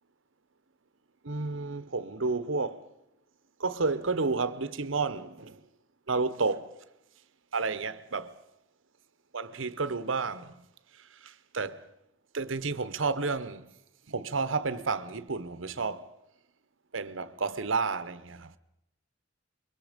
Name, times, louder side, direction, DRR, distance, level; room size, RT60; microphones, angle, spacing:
voice 1, 1.2-2.9 3.6-5.7 6.1-6.8 7.5-8.4 9.3-10.7 11.0-11.8 12.3-13.8 14.1-16.1 16.9-18.6, right 4 dB, 70° right, 1.0 m, -31 dB
26.0 x 23.0 x 5.2 m
head